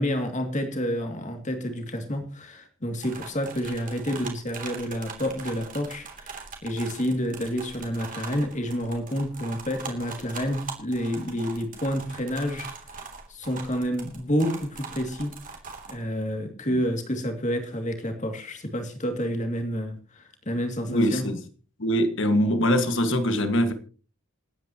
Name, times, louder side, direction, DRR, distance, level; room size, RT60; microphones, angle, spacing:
voice 1, 0.0-15.3 15.9-21.2, equal, 35° left, 5 dB, 2.5 m, -29 dB
sound 1, 3.0-16.0, right 5 dB, 35° right, 3.0 m, -41 dB
voice 2, 20.9-21.4 21.8-23.7, equal, 55° left, 8 dB, 1.8 m, -23 dB
28.0 x 9.5 x 3.0 m, 0.38 s
head